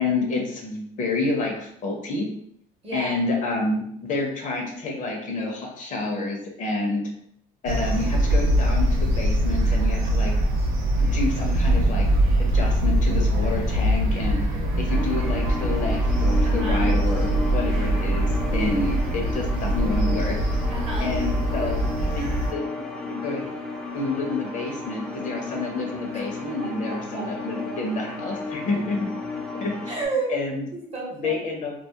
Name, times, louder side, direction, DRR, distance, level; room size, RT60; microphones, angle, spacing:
voice 1, 0.0-2.3 2.9-7.1 7.6-10.3 11.0-12.1 12.4-14.4 14.8-20.4 21.0-21.8 22.2-23.4 23.9-29.1 29.3-29.9 30.3-31.7, left 3 dB, 45° left, 1 dB, 0.6 m, -29 dB
sound 1, 7.7-22.5, right 1 dB, 80° right, 0.5 m, -22 dB
voice 2, 10.2-10.7 16.4-16.9 20.7-21.2 26.1-26.2 26.6-27.2 29.9-30.3 30.7-31.3, right 3 dB, 35° right, -1 dB, 0.8 m, -32 dB
sound 2, 14.9-30.1, left 3 dB, ahead, 0.4 m, -33 dB
2.2 x 2.0 x 2.7 m, 0.70 s
cardioid pair, 115°, 18 cm